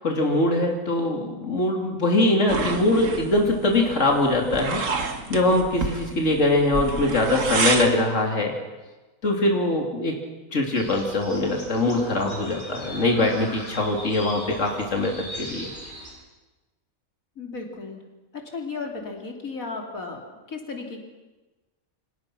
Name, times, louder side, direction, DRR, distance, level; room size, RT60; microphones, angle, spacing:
voice 1, 0.0-8.6 9.2-10.2 10.5-15.7, left 2 dB, 60° left, 1 dB, 3.2 m, -22 dB
sound 1, 2.5-8.0, right 4 dB, 65° right, 2.1 m, -29 dB
sound 2, 10.7-16.1, left 1 dB, 35° left, 6.6 m, -39 dB
voice 2, 17.4-18.0 18.3-21.0, left 4 dB, 80° left, 2 dB, 3.5 m, -35 dB
28.5 x 26.0 x 6.1 m, 1.1 s
omnidirectional pair, 1.4 m